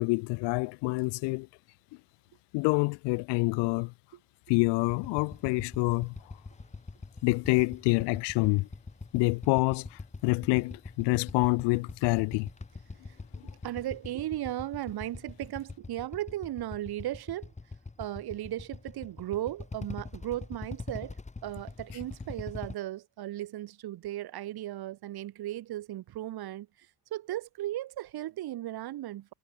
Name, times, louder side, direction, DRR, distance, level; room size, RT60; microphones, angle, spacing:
voice 1, 0.0-1.5 2.5-3.9 4.5-6.1 7.2-8.7 9.1-12.5 13.4-13.5, left 28 dB, 90° left, 1.0 m, -27 dB
Motorcycle / Idling, 4.8-22.7, left 3 dB, 15° left, 3.2 m, -43 dB
voice 2, 13.6-17.5 18.0-21.2 21.4-26.7 27.1-29.3, right 14 dB, 65° right, 3.4 m, -36 dB
cardioid pair, 100°, 40 cm